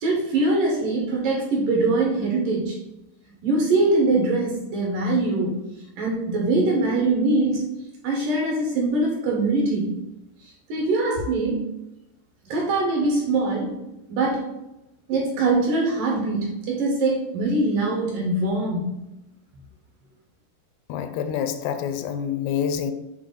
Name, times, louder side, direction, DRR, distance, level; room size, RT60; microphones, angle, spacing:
voice 1, 0.0-2.8 3.4-5.6 6.0-7.6 8.0-10.0 10.7-11.7 12.5-13.8 14.1-14.5 15.1-19.0, right 2 dB, 65° right, 2.3 m, -23 dB
voice 2, 20.9-22.9, left 8 dB, 85° left, 2.7 m, -27 dB
8.2 x 3.3 x 3.9 m
omnidirectional pair, 4.9 m